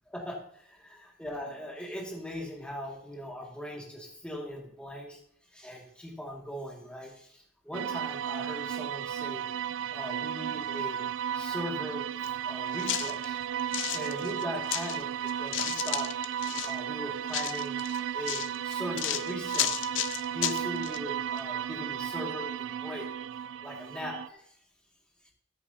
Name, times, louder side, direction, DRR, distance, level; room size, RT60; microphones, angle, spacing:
voice 1, 0.1-5.2 5.5-9.5 9.9-11.0 11.3-12.0 12.4-13.4 13.9-16.1 16.6-17.8 18.1-19.8 20.3-23.1 23.6-24.4, equal, 5° left, -2 dB, 2.1 m, -40 dB
sound 1, 7.7-24.3, right 9 dB, 80° right, 0.3 m, -34 dB
sound 2, 12.2-12.3 12.7-15.0 15.3-16.8 17.3-21.0 21.4-21.5, left 12 dB, 90° left, 0.6 m, -33 dB
14.0 x 9.8 x 2.8 m, 0.67 s
head